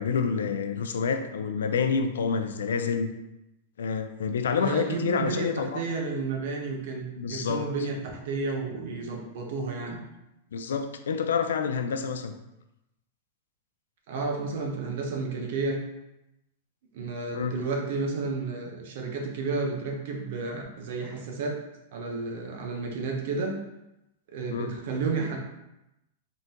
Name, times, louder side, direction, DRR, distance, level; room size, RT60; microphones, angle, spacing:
voice 1, 0.0-3.1 3.8-5.8 7.2-7.7 10.5-12.3 17.3-17.6 24.5-24.8, left 6 dB, 90° left, 8 dB, 0.4 m, -28 dB
voice 2, 4.6-10.0 14.1-15.8 16.9-21.5 21.9-23.6 24.3-25.4, right 4 dB, 65° right, 1 dB, 0.9 m, -31 dB
3.8 x 2.6 x 3.7 m, 0.91 s
hypercardioid pair, 130°, 0 cm